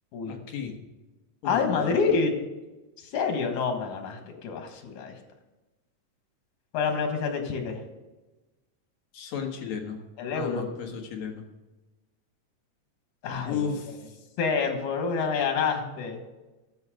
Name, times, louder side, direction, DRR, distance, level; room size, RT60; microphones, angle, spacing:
voice 1, 0.3-0.8 1.4-2.0 9.1-10.0 10.4-11.5 13.4-14.2, left 6 dB, 70° left, 3 dB, 2.5 m, -34 dB
voice 2, 1.4-2.3 3.1-5.2 6.7-7.8 10.2-10.6 13.2-13.7 14.4-16.2, left 5 dB, 90° left, 5 dB, 2.9 m, -27 dB
9.7 x 8.0 x 5.0 m, 1.1 s
omnidirectional pair, 3.4 m